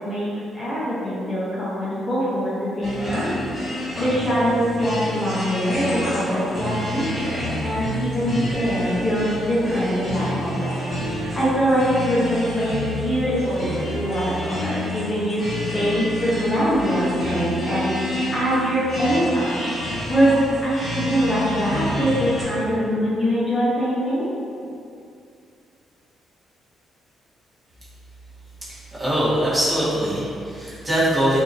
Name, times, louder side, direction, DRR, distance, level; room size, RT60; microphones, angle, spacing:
voice 1, 0.0-24.3, equal, 15° left, -10 dB, 0.8 m, -23 dB
sound 1, 2.8-22.4, left 1 dB, 30° left, 1.2 m, -29 dB
voice 2, 29.0-31.4, equal, 25° right, -10 dB, 1.2 m, -22 dB
2.7 x 2.7 x 2.5 m, 2.4 s
cardioid pair, 90°, 0 cm